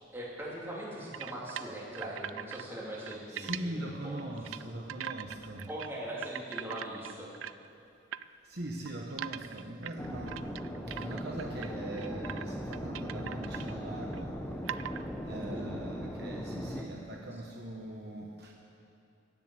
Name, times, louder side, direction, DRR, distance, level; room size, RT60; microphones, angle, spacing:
voice 1, 0.1-4.2 5.7-7.3 15.5-15.7, right 1 dB, 10° right, -5 dB, 2.7 m, -41 dB
sound 1, 1.1-2.6 2.9-3.6 4.2-4.6 4.9-5.9 6.2-7.7 8.1-8.2 8.9-11.7 12.0-12.5 12.7-13.7 14.1-14.2 14.7-15.1, right 10 dB, 90° right, 0.4 m, -41 dB
voice 2, 3.3-5.7 8.4-10.5 10.8-14.5 15.2-18.5, right 1 dB, 55° right, 0 dB, 1.1 m, -41 dB
sound 2, 10.0-16.9, equal, 10° left, 0.8 m, -39 dB
16.5 x 7.5 x 8.4 m, 2.7 s
head